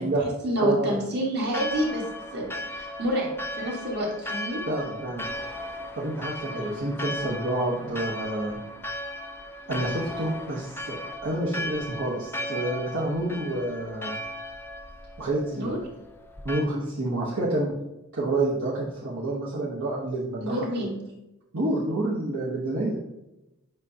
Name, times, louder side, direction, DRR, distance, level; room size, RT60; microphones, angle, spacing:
voice 1, 0.4-2.0 2.3-3.3 3.5-4.6 6.5-6.7 15.5-15.8 20.4-21.0, equal, 50° right, -2 dB, 1.8 m, -28 dB
Church bell, 1.5-16.6, left 1 dB, 10° left, 0.5 m, -36 dB
voice 2, 4.7-5.5 6.0-8.6 9.7-14.2 15.2-15.7 16.4-17.7 18.1-20.6 21.5-23.0, right 2 dB, 65° right, -6 dB, 1.1 m, -28 dB
7.8 x 5.3 x 2.8 m, 0.94 s
head